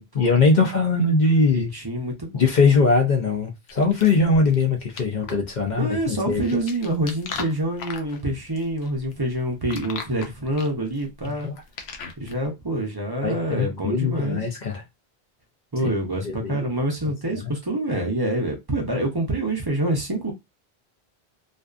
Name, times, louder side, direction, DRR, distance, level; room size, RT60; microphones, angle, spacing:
voice 1, 0.1-1.7 2.3-6.4 11.4-11.5 13.2-14.8 15.8-15.9 16.2-16.7 17.3-17.5, left 3 dB, 55° left, 0.6 m, -21 dB
voice 2, 1.5-2.4 5.8-11.5 12.2-14.4 15.7-20.3, right 1 dB, 30° right, 0.5 m, -26 dB
sound 1, 3.7-12.5, left 5 dB, 85° left, 0.8 m, -39 dB
2.5 x 2.3 x 2.4 m
omnidirectional pair, 1.0 m